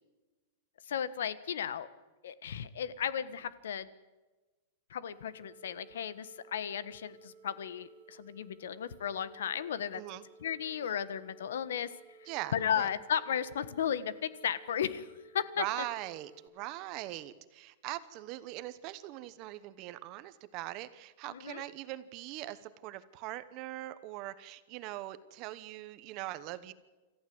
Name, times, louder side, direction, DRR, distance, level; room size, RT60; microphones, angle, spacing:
voice 1, 0.9-1.9 2.2-3.9 4.9-10.0 10.4-11.9 12.2-15.1 15.3-15.6 21.3-21.6, left 8 dB, 90° left, 16 dB, 1.3 m, -35 dB
sound 1, 5.1-16.5, right 5 dB, 50° right, 2.3 m, -58 dB
voice 2, 9.9-10.2 12.3-12.9 15.6-26.7, right 16 dB, 30° right, 14 dB, 1.0 m, -41 dB
27.5 x 14.5 x 7.9 m, 1.2 s
supercardioid pair, 175°, 0 cm